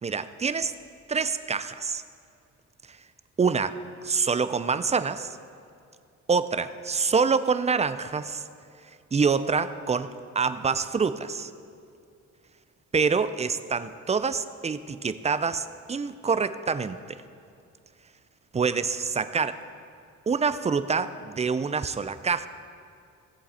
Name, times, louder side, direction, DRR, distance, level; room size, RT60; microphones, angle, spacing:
voice 1, 0.0-0.7 1.1-2.0 3.4-3.8 4.0-5.4 6.3-8.4 9.1-11.5 12.9-17.2 18.5-19.6 20.3-22.5, right 5 dB, 20° right, 12 dB, 0.5 m, -26 dB
17.5 x 7.7 x 4.3 m, 2.4 s
cardioid pair, 90°, 30 cm